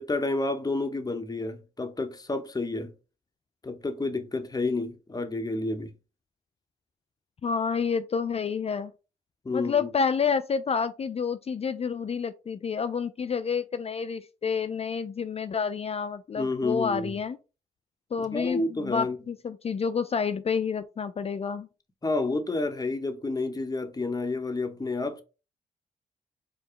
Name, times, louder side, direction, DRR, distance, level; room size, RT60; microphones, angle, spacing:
voice 1, 0.0-2.9 3.6-5.9 9.4-9.9 16.4-17.1 18.2-19.2 22.0-25.2, left 2 dB, 25° left, 0.9 m, -30 dB
voice 2, 7.4-8.9 9.5-17.4 18.1-21.7, left 6 dB, 40° left, 0.4 m, -29 dB
4.7 x 2.1 x 4.6 m
supercardioid pair, 50°, 17 cm